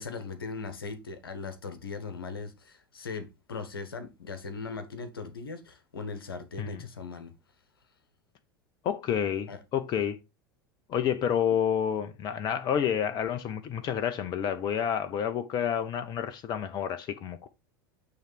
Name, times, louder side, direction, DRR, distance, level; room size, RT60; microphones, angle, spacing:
voice 1, 0.0-7.3 9.5-9.6, left 4 dB, 70° left, 1.3 m, -39 dB
voice 2, 8.8-10.2 10.9-17.5, left 8 dB, 35° left, 0.8 m, -29 dB
9.0 x 3.4 x 4.5 m
figure-of-eight pair, 80°, 12 cm